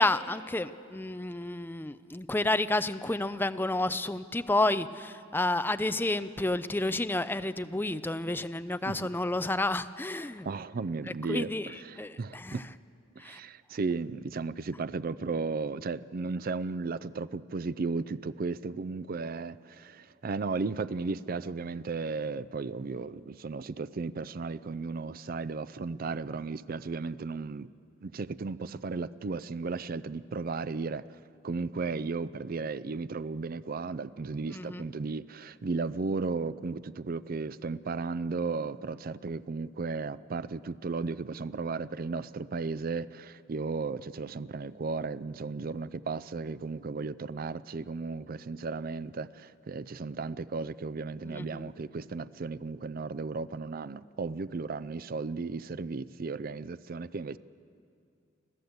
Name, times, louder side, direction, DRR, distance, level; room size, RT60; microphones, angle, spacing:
voice 1, 0.0-10.5 11.3-11.7 12.0-12.6 13.2-13.4 34.5-34.8 51.2-51.7, left 2 dB, 10° left, 12 dB, 0.5 m, -30 dB
voice 2, 10.4-12.7 13.2-27.7 28.0-31.0 31.4-57.4, right 4 dB, 50° right, 16 dB, 0.4 m, -35 dB
25.5 x 15.0 x 8.0 m, 2.4 s
head